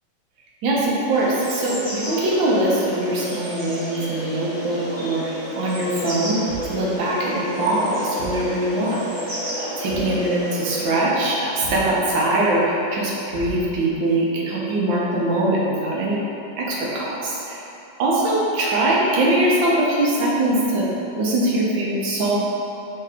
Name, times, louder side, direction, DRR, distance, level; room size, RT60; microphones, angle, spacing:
voice 1, 0.6-6.4 6.6-9.0 9.6-16.2 16.6-17.6 18.0-20.8 21.2-22.4, right 1 dB, 80° right, -5 dB, 1.5 m, -22 dB
sound 1, 1.1-10.9, equal, 25° right, 0.7 m, -31 dB
Thump thud, 6.5-6.9 8.2-8.5 9.9-10.2 11.6-12.0 13.3-13.9, right 2 dB, 40° left, 1.0 m, -35 dB
5.0 x 2.8 x 3.4 m, 3.0 s
omnidirectional pair, 2.0 m